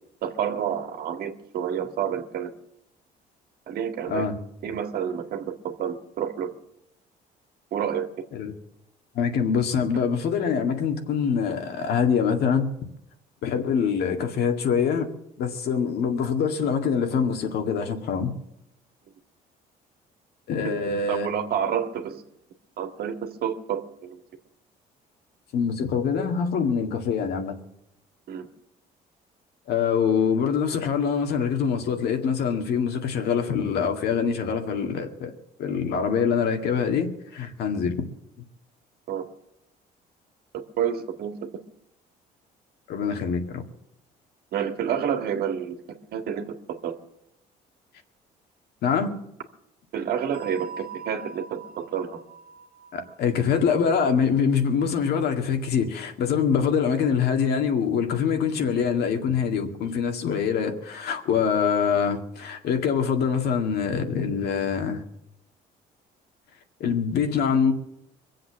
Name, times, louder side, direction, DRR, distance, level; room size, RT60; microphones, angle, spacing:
voice 1, 0.2-2.5 3.7-4.3 4.6-6.5 7.7-8.1 20.6-20.7 21.1-22.2 22.8-24.2 28.3-28.5 39.1-39.3 40.5-41.5 44.5-47.0 49.9-52.2, right 8 dB, 65° right, 1.7 m, -29 dB
voice 2, 4.1-4.4 8.3-8.5 9.1-12.7 13.4-15.1 15.4-18.3 20.5-21.3 25.5-27.6 29.7-35.3 35.6-38.0 42.9-43.6 48.8-49.2 52.9-65.0 66.8-67.7, left 6 dB, 70° left, 2.0 m, -24 dB
sound 1, 50.3-55.0, right 5 dB, 90° left, 2.0 m, -44 dB
23.0 x 7.8 x 7.4 m
cardioid pair, 110°, 17 cm